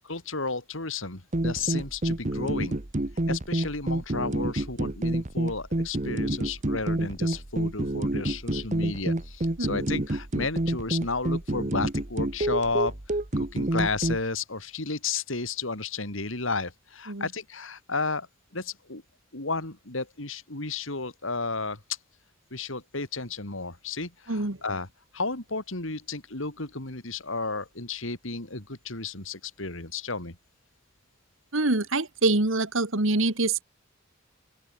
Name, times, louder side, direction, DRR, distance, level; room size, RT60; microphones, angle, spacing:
voice 1, 0.1-2.8 3.3-18.3 18.5-19.0 19.3-21.8 22.5-24.9 25.1-30.4, left 3 dB, 70° left, 3.5 m, -33 dB
sound 1, 1.3-14.2, right 1 dB, 35° right, 1.3 m, -28 dB
voice 2, 31.5-33.6, right 2 dB, 75° right, 2.2 m, -25 dB
open air
head